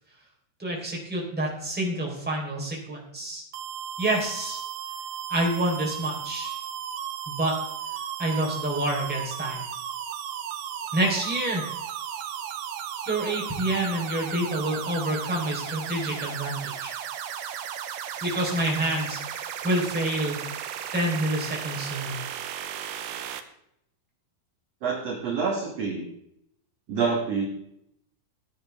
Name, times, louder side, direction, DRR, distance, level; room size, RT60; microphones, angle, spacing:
voice 1, 0.6-3.4 4.0-4.6 5.3-6.6 7.3-7.6 8.2-9.6 10.9-11.6 13.0-16.9 18.2-20.4 20.9-22.2, right 1 dB, ahead, -3 dB, 3.1 m, -28 dB
sound 1, 3.5-23.4, right 9 dB, 90° right, 1.8 m, -35 dB
voice 2, 24.8-26.1 26.9-27.4, right 5 dB, 55° right, -1 dB, 1.9 m, -27 dB
16.0 x 10.0 x 3.5 m, 0.76 s
omnidirectional pair, 5.0 m